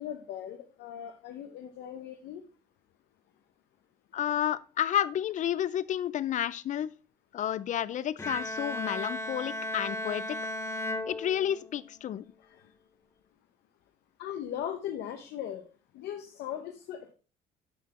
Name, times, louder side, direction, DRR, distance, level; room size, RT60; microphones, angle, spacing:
voice 1, 0.0-2.4 12.4-12.7 14.2-15.7 15.9-17.1, left 10 dB, 80° left, 0.8 m, -39 dB
voice 2, 4.1-6.9 7.3-10.2 11.1-12.2, left 10 dB, 50° left, 0.4 m, -31 dB
Bowed string instrument, 8.2-11.9, left 1 dB, 15° left, 0.7 m, -35 dB
10.0 x 4.1 x 4.2 m
cardioid pair, 110°, 17 cm